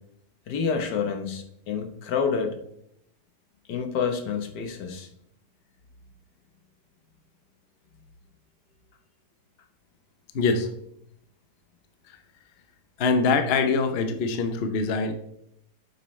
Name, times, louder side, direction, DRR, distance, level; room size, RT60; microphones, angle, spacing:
voice 1, 0.5-2.6 3.7-5.1, left 6 dB, 80° left, 4 dB, 1.6 m, -28 dB
voice 2, 10.3-10.7 13.0-15.1, left 4 dB, 50° left, 8 dB, 0.8 m, -23 dB
8.6 x 7.8 x 3.2 m, 0.74 s
omnidirectional pair, 1.8 m